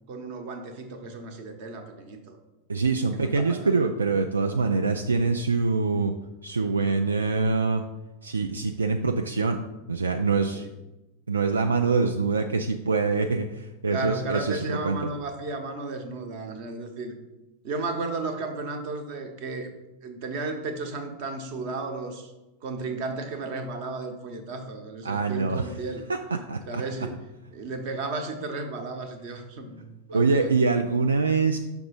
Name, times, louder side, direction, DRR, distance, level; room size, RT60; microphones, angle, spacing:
voice 1, 0.1-2.4 3.1-3.8 10.6-10.7 13.9-17.2 17.6-19.7 20.0-22.3 22.6-26.1 26.7-30.6, right 3 dB, 45° right, 5 dB, 0.9 m, -34 dB
voice 2, 2.7-6.1 6.4-7.8 8.2-9.6 9.9-10.7 11.3-15.1 25.0-25.6 26.5-26.8 30.1-31.6, right 4 dB, 75° right, 5 dB, 0.3 m, -24 dB
5.9 x 3.5 x 5.3 m, 1.0 s
figure-of-eight pair, 90°, 0 cm